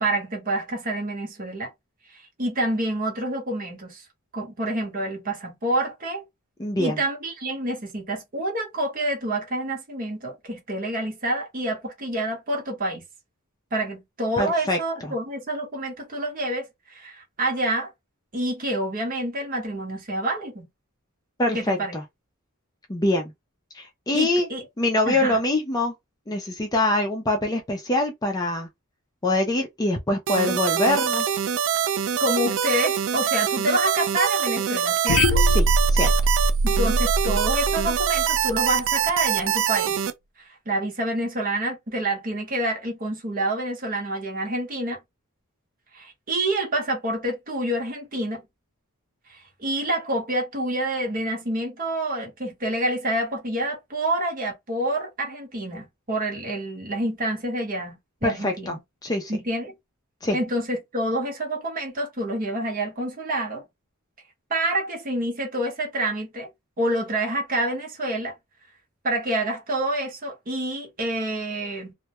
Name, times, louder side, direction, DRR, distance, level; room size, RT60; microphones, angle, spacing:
voice 1, 0.0-1.7 2.1-4.0 4.3-6.2 6.8-13.0 13.7-17.9 18.3-20.7 21.5-22.0 24.1-24.6 25.0-25.4 32.2-35.4 36.6-40.0 40.4-45.0 45.9-48.4 49.3-58.8 59.3-59.7 60.3-63.6 64.5-66.5 66.8-68.3 69.0-71.9, right 1 dB, 40° right, 0.9 m, -27 dB
voice 2, 6.6-7.0 14.4-15.1 21.4-22.0 22.9-23.3 23.7-24.5 24.8-25.9 26.3-28.7 29.2-31.4 35.5-35.7 35.9-36.1 58.2-59.3 60.2-60.4, left 1 dB, 15° left, 0.4 m, -24 dB
sound 1, 30.3-40.1, right 8 dB, 60° right, 0.3 m, -24 dB
sound 2, 35.1-39.2, right 1 dB, 80° left, 0.4 m, -22 dB
2.2 x 2.1 x 2.8 m
head